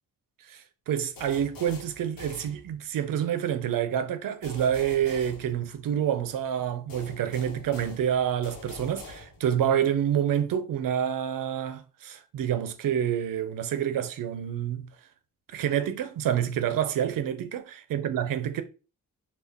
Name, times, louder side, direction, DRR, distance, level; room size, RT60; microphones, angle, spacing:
voice 1, 0.5-14.9 15.5-18.6, right 9 dB, 70° right, 0.6 m, -28 dB
sound 1, 1.2-3.1 4.4-6.2 6.9-9.7, left 2 dB, 75° left, 1.1 m, -45 dB
3.4 x 2.4 x 3.5 m
wide cardioid pair, 140°, 34 cm